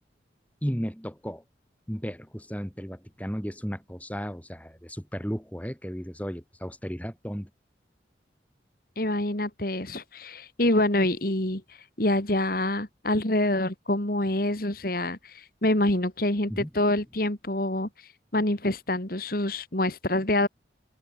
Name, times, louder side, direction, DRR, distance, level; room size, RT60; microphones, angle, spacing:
voice 1, 0.6-1.4 1.9-7.5 16.5-16.7, equal, 10° left, 5.1 m, -34 dB
voice 2, 9.0-11.6 12.0-17.9 18.3-20.5, left 1 dB, 50° left, 2.6 m, -26 dB
open air
head